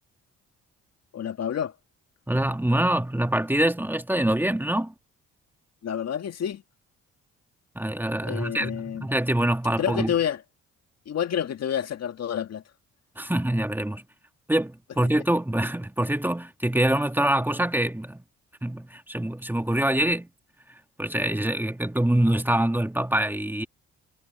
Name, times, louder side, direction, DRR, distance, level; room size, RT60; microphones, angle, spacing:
voice 1, 1.1-1.7 5.8-6.6 8.2-9.1 9.8-10.4 11.1-12.6, left 9 dB, 60° left, 1.9 m, -28 dB
voice 2, 2.3-4.9 7.8-10.1 13.2-14.0 14.5-18.2 18.6-20.3 21.0-23.7, right 1 dB, 5° right, 2.1 m, -25 dB
cardioid pair, 80°, 29 cm